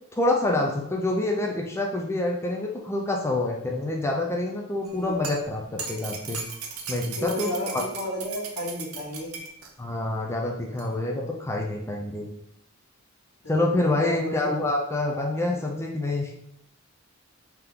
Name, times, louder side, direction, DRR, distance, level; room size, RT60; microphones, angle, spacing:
voice 1, 0.2-6.4 6.9-7.8 9.8-12.3 13.5-16.3, left 2 dB, 10° left, 0 dB, 0.4 m, -27 dB
sound 1, 4.9-9.7 10.8-10.9, right 4 dB, 90° right, 0.7 m, -37 dB
voice 2, 7.2-9.3 13.4-14.5 15.1-15.5 15.7-15.8, equal, 85° left, -2 dB, 1.3 m, -33 dB
3.4 x 2.9 x 3.7 m, 0.78 s
head